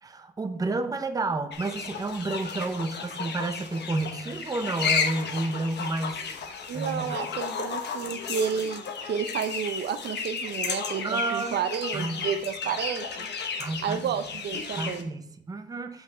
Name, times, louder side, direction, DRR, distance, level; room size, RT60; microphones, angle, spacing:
voice 1, 0.0-6.3 6.7-7.2 11.0-11.6 11.9-12.3 13.6-14.2 14.8-16.0, right 3 dB, 20° right, 9 dB, 0.6 m, -31 dB
sound 1, 1.5-15.0, left 5 dB, 65° left, 1.0 m, -33 dB
voice 2, 6.7-13.3 13.8-15.1, right 7 dB, 65° right, 10 dB, 0.5 m, -31 dB
6.2 x 5.4 x 4.9 m, 0.74 s
wide cardioid pair, 135°, 19 cm